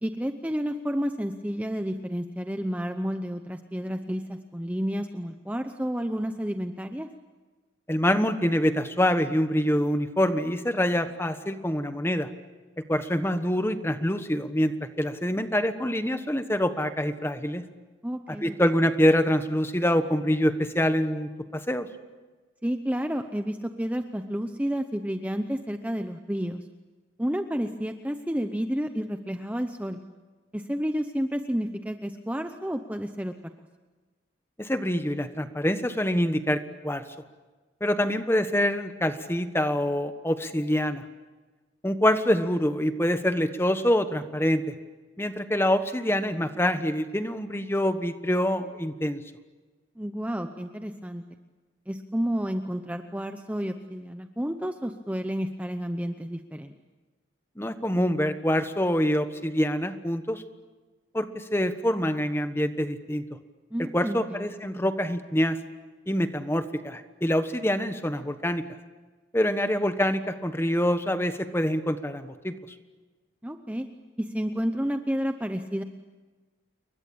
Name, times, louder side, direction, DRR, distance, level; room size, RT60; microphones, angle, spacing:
voice 1, 0.0-7.1 18.0-18.6 22.6-26.7 27.2-30.0 30.5-33.3 50.0-51.2 51.9-56.7 63.7-64.5 73.4-73.9 74.2-75.8, equal, 5° right, 7 dB, 0.8 m, -30 dB
voice 2, 7.9-12.3 12.9-14.7 15.0-17.6 18.3-21.9 34.6-37.0 37.8-41.0 41.8-44.7 45.2-49.2 57.6-60.4 61.1-63.2 63.8-65.6 66.1-68.6 69.3-72.5, equal, 10° left, 9 dB, 1.2 m, -25 dB
29.0 x 22.5 x 8.7 m, 1.3 s
head